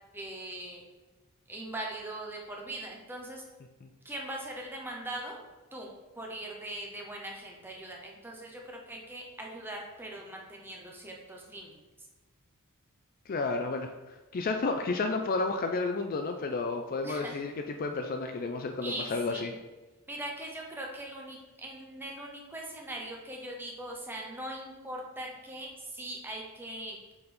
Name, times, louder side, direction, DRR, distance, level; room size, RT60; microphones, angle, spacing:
voice 1, 0.1-0.8 1.5-3.4 4.0-5.4 5.7-5.9 6.2-11.8 17.0-17.4 18.8-19.5 20.1-27.1, right 1 dB, 10° right, -1 dB, 0.8 m, -41 dB
voice 2, 13.3-13.9 14.3-19.5, left 3 dB, 40° left, 5 dB, 0.4 m, -31 dB
5.4 x 4.0 x 4.3 m, 1.2 s
head